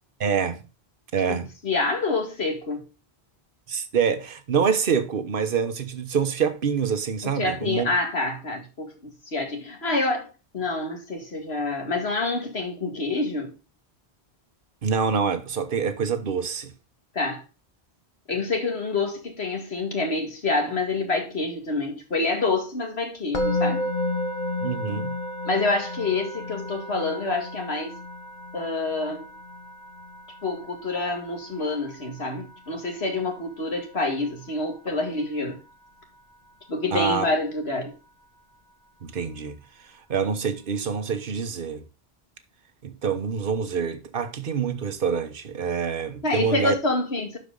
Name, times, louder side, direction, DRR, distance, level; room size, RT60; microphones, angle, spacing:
voice 1, 0.2-0.6 1.1-1.5 3.7-7.9 14.8-16.7 24.6-25.1 36.9-37.3 39.0-39.6 40.1-41.8 42.8-46.7, right 6 dB, 55° right, 1.2 m, -26 dB
voice 2, 1.3-2.8 7.2-10.3 10.5-13.6 17.1-17.4 18.3-23.8 25.4-28.0 28.5-29.3 30.4-35.6 36.7-38.0 46.2-47.4, left 3 dB, 75° left, 2.3 m, -27 dB
Musical instrument, 23.3-34.5, left 1 dB, 45° left, 1.3 m, -33 dB
12.0 x 4.7 x 3.8 m
omnidirectional pair, 1.1 m